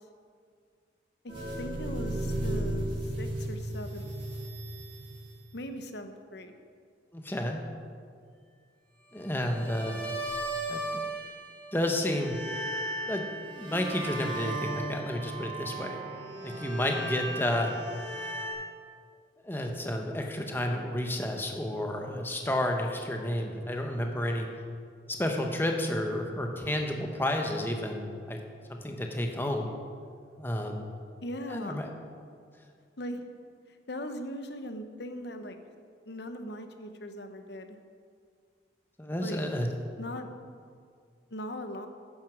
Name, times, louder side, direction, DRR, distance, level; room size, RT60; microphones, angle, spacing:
voice 1, 1.2-4.1 5.5-6.5 31.2-31.8 33.0-33.2 33.7-35.6 36.1-37.8 39.2-39.4 40.0-40.3 41.3-41.9, left 1 dB, 60° left, 7 dB, 0.9 m, -39 dB
sound 1, 1.3-5.5 9.3-11.7 12.0-18.5, right 1 dB, 25° right, 3.5 m, -35 dB
voice 2, 7.1-7.6 9.1-10.0 10.7-11.0 11.7-12.4 13.1-13.2 13.6-16.0 16.4-17.8 19.4-24.5 25.1-28.4 28.7-29.7 30.4-30.9 31.5-31.9 39.0-39.7, left 1 dB, 10° left, 3 dB, 1.0 m, -31 dB
9.7 x 9.5 x 6.2 m, 2.2 s
head